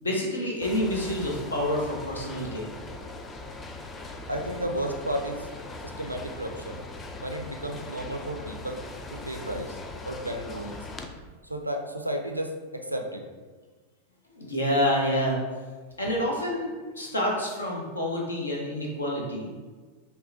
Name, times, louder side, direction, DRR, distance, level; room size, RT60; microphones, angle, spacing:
voice 1, 0.0-2.7 14.3-15.4 16.0-19.5, equal, 75° left, -2 dB, 0.8 m, -28 dB
sound 1, 0.6-11.1, left 2 dB, 20° left, 0.4 m, -40 dB
voice 2, 4.3-5.5 5.8-6.8 7.2-8.8 9.1-9.7 10.1-10.8 11.5-13.3, right 1 dB, 85° right, 3 dB, 0.4 m, -33 dB
5.4 x 2.1 x 2.8 m, 1.4 s
figure-of-eight pair, 90°, 0 cm